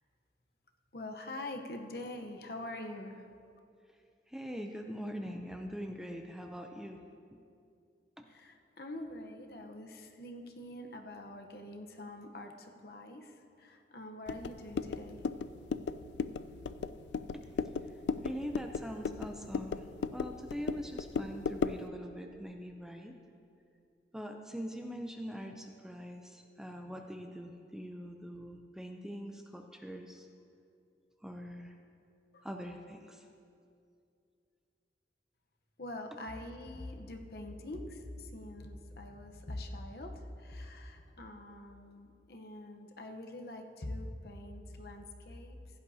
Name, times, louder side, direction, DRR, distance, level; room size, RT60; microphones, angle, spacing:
voice 1, 0.9-3.3 8.3-15.3 32.3-32.5 35.8-45.6, left 1 dB, 60° left, 3 dB, 0.9 m, -44 dB
voice 2, 4.3-7.0 7.3-7.4 8.2-8.3 17.3-17.4 18.2-19.9 20.1-23.2 24.1-30.3 31.2-31.7 32.4-33.3, equal, 5° right, 3 dB, 0.4 m, -43 dB
sound 1, 14.3-21.9, left 5 dB, 80° left, 0.3 m, -36 dB
16.0 x 11.0 x 2.7 m, 2.5 s
head